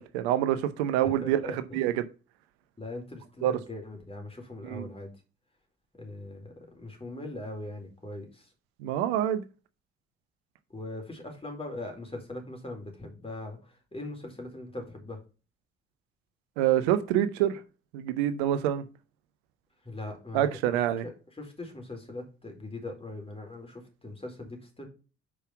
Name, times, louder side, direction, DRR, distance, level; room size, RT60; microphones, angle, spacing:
voice 1, 0.0-2.0 3.4-3.5 4.6-4.9 8.8-9.4 16.6-17.6 17.9-18.8 20.3-21.0, right 12 dB, 80° right, 0.7 m, -26 dB
voice 2, 1.0-1.8 2.8-5.1 6.0-8.5 10.7-15.2 19.8-24.9, left 2 dB, 15° left, 4.2 m, -40 dB
6.0 x 5.6 x 5.8 m
hypercardioid pair, 45°, 32 cm